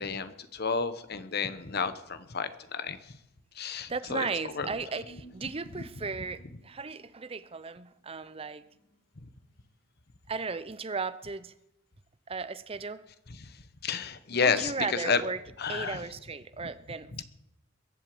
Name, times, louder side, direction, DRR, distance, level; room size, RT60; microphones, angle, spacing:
voice 1, 0.0-3.2 3.5-4.3 4.5-4.7 13.4-13.6 13.8-15.2 15.6-16.0 16.6-16.7 17.1-17.2, left 5 dB, 50° left, 12 dB, 1.1 m, -31 dB
voice 2, 3.9-8.6 10.3-11.5 12.3-13.0 14.3-15.4 15.7-17.2, right 4 dB, 30° right, 14 dB, 0.7 m, -36 dB
Human voice, 4.9-9.5 9.8-9.9, right 1 dB, 75° left, 2.8 m, -57 dB
22.0 x 8.1 x 7.7 m, 0.87 s
head